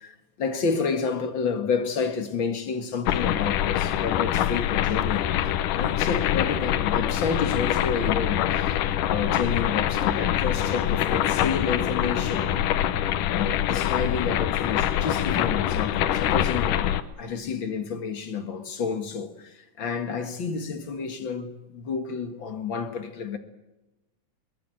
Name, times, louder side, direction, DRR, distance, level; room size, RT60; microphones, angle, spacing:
voice 1, 0.0-5.3 5.8-8.8 9.1-12.5 13.3-23.4, left 5 dB, 45° left, 1.9 m, -30 dB
sound 1, 3.1-17.0, left 11 dB, 70° left, 2.4 m, -25 dB
23.0 x 21.5 x 7.8 m
omnidirectional pair, 4.1 m